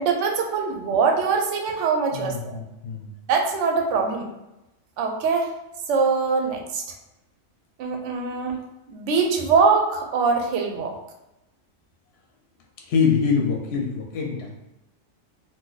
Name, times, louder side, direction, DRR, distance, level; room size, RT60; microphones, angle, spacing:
voice 1, 0.0-2.6 3.3-4.3 5.0-5.5 5.9-6.8 7.8-8.6 8.9-10.9, right 5 dB, 70° right, 2 dB, 0.8 m, -23 dB
voice 2, 2.1-3.1 12.9-14.5, left 6 dB, 60° left, 0 dB, 0.8 m, -24 dB
2.6 x 2.3 x 3.9 m, 0.95 s
omnidirectional pair, 1.4 m